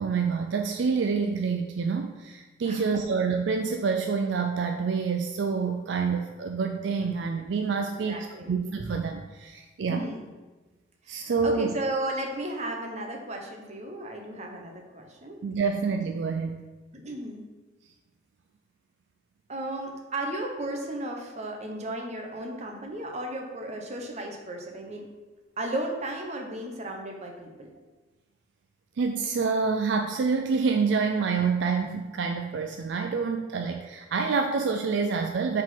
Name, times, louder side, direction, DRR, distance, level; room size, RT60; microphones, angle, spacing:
voice 1, 0.0-10.0 11.1-11.7 15.4-16.6 29.0-35.6, right 5 dB, 65° right, 4 dB, 0.4 m, -27 dB
voice 2, 2.7-3.0 7.9-8.5 9.9-10.3 11.0-15.4 16.9-17.4 19.5-25.1 25.6-27.7, right 1 dB, 35° right, 2 dB, 0.9 m, -34 dB
5.0 x 3.8 x 5.6 m, 1.2 s
head